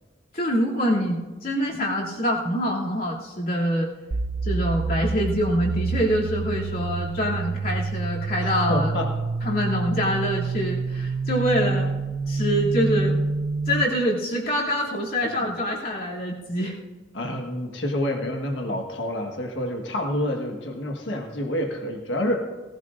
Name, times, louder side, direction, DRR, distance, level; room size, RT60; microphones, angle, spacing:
voice 1, 0.3-3.9 4.4-8.9 9.4-11.9 12.3-13.2 13.7-16.7, equal, 55° left, -4 dB, 2.7 m, -25 dB
sound 1, 4.1-13.9, right 4 dB, 60° right, 0.5 m, -27 dB
voice 2, 8.4-9.1 15.2-15.5 17.1-22.4, left 1 dB, 85° left, 2 dB, 1.5 m, -28 dB
19.0 x 15.0 x 2.6 m, 1.2 s
head